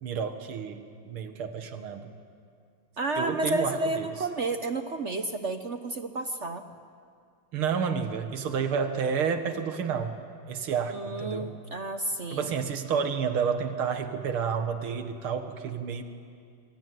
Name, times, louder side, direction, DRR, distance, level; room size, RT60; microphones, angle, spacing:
voice 1, 0.0-2.1 3.2-4.1 7.5-10.2 10.5-11.5 12.3-16.0, right 6 dB, 90° right, 7 dB, 2.4 m, -30 dB
voice 2, 3.0-6.6 10.9-12.5, right 2 dB, 45° right, 7 dB, 1.0 m, -31 dB
26.0 x 23.0 x 9.3 m, 2.3 s
omnidirectional pair, 2.3 m